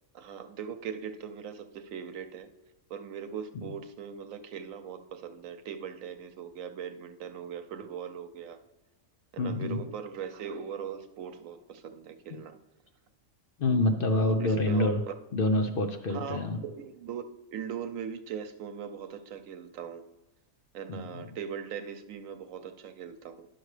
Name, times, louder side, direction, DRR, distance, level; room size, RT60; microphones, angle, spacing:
voice 1, 0.1-2.5 2.9-8.6 9.3-12.6 14.1-15.1 16.1-20.0 20.7-23.5, right 7 dB, 80° right, 9 dB, 1.1 m, -40 dB
voice 2, 9.4-9.8 12.3-12.4 13.6-15.0 15.3-16.6 20.9-21.3, left 2 dB, 55° left, 6 dB, 0.7 m, -27 dB
11.0 x 6.2 x 3.2 m, 1.1 s
omnidirectional pair, 1.4 m